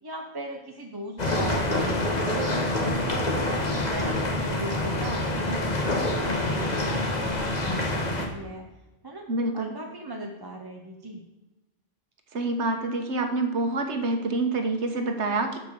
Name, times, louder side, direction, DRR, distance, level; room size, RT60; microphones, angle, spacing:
voice 1, 0.0-8.0 8.3-8.6 9.0-9.3 9.5-11.2, right 1 dB, 25° right, 2 dB, 0.7 m, -38 dB
sound 1, 1.2-8.3, left 1 dB, 35° left, 1.5 m, -26 dB
voice 2, 9.3-9.7 12.3-15.6, right 2 dB, 65° right, 5 dB, 1.5 m, -27 dB
8.1 x 7.1 x 6.7 m, 1.1 s
omnidirectional pair, 1.3 m